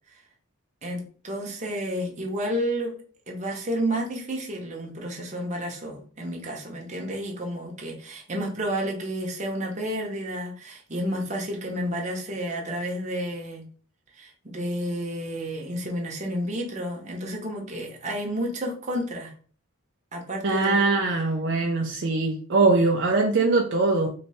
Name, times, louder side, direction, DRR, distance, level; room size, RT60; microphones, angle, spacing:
voice 1, 0.8-3.0 3.3-13.6 14.1-19.3 20.1-20.9, equal, 35° right, 0 dB, 0.9 m, -31 dB
voice 2, 20.4-24.1, right 3 dB, 55° right, 0 dB, 0.5 m, -22 dB
3.2 x 2.9 x 4.2 m, 0.42 s
head